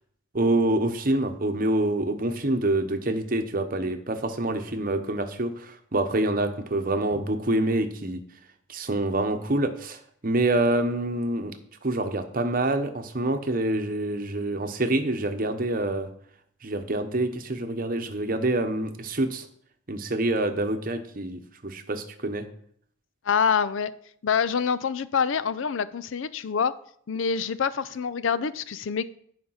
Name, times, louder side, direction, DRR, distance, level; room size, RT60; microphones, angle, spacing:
voice 1, 0.3-8.2 8.7-11.5 11.8-16.1 16.6-19.4 19.9-22.4, right 1 dB, 40° right, 0.9 m, -26 dB
voice 2, 23.3-23.9 24.2-26.7 27.1-29.0, left 6 dB, 70° left, 0.4 m, -26 dB
10.0 x 5.1 x 5.7 m
head